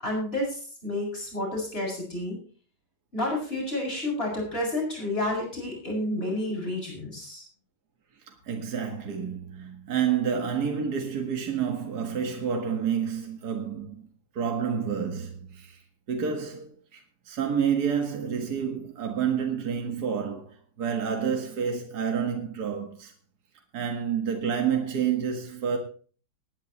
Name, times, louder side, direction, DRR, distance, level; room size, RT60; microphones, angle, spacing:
voice 1, 0.0-2.4 3.1-7.4, left 1 dB, 35° left, 7.6 m, -30 dB
voice 2, 8.3-14.1 14.3-15.8 16.1-23.1 23.7-25.8, right 7 dB, 60° right, 2.2 m, -29 dB
20.0 x 10.5 x 3.2 m
omnidirectional pair, 1.9 m